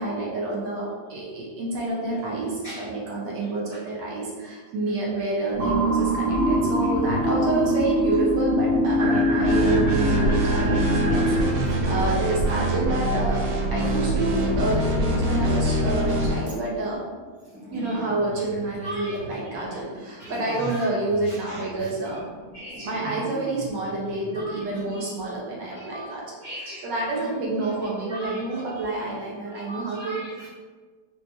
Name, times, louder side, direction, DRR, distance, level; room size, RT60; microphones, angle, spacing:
voice 1, 0.0-13.4 13.7-17.0 17.7-22.2 22.8-26.3 26.8-30.2, right 2 dB, 70° right, -4 dB, 1.2 m, -28 dB
sound 1, 5.5-11.4, equal, 40° right, 0.8 m, -23 dB
sound 2, 9.4-16.5, right 1 dB, 85° right, 0.7 m, -24 dB
sound 3, 9.6-11.0 11.3-25.2, right 1 dB, 5° left, 0.7 m, -39 dB
voice 2, 18.8-19.2 19.7-19.8 20.2-20.8 21.2-21.9 22.5-23.5 24.3-24.6 24.9-25.3 25.7-26.1 26.4-30.5, equal, 45° left, -11 dB, 0.8 m, -39 dB
5.2 x 2.9 x 2.2 m, 1.5 s
omnidirectional pair, 2.2 m